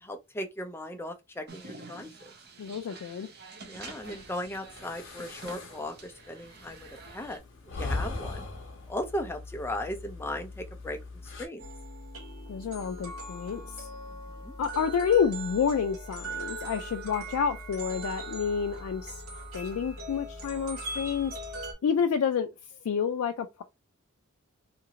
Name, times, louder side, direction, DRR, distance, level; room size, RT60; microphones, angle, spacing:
voice 1, 0.0-2.1 3.6-7.4 7.8-8.5 8.9-11.7 14.3-14.6, left 1 dB, 10° left, 0.4 m, -37 dB
sound 1, 1.5-7.4, right 3 dB, 50° right, 0.8 m, -48 dB
voice 2, 2.6-3.3 12.5-13.9 14.6-19.2 19.5-21.3 21.8-22.5 22.8-23.6, left 7 dB, 90° left, 0.3 m, -29 dB
sound 2, 3.8-11.5, left 2 dB, 60° left, 0.7 m, -40 dB
sound 3, 11.6-21.7, right 1 dB, 85° right, 1.2 m, -40 dB
2.8 x 2.5 x 2.8 m
head